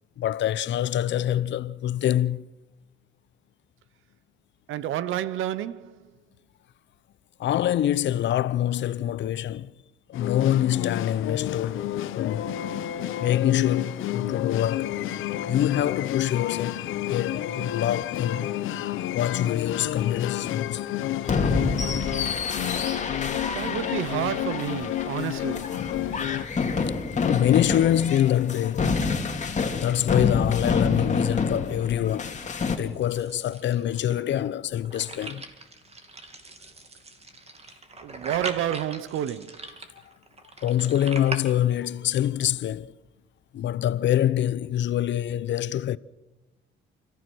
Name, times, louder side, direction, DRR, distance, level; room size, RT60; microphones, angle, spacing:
voice 1, 0.2-2.5 7.4-9.7 10.1-11.8 12.1-12.6 13.2-18.5 19.1-20.8 27.2-29.0 29.7-32.4 32.8-35.4 40.6-42.9 43.5-46.0, left 11 dB, 70° left, 0.7 m, -25 dB
voice 2, 4.7-6.1 23.5-25.8 38.0-39.7, right 11 dB, 85° right, 1.0 m, -30 dB
sound 1, 10.1-26.4, left 12 dB, 85° left, 1.0 m, -30 dB
sound 2, 21.2-32.8, left 4 dB, 35° left, 2.4 m, -28 dB
sound 3, 32.4-41.4, right 3 dB, 30° right, 2.6 m, -41 dB
30.0 x 14.5 x 6.3 m
cardioid pair, 90°, 20 cm